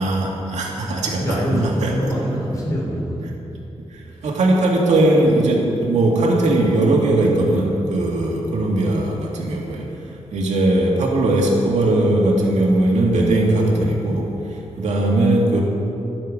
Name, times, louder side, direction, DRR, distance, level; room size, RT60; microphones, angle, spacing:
voice 1, 0.0-2.0 3.9-9.9 10.3-15.6, right 2 dB, 85° right, -1 dB, 2.1 m, -19 dB
voice 2, 1.2-3.3, equal, 30° left, -3 dB, 3.2 m, -24 dB
12.5 x 11.0 x 5.3 m, 2.8 s
wide cardioid pair, 135°, 12 cm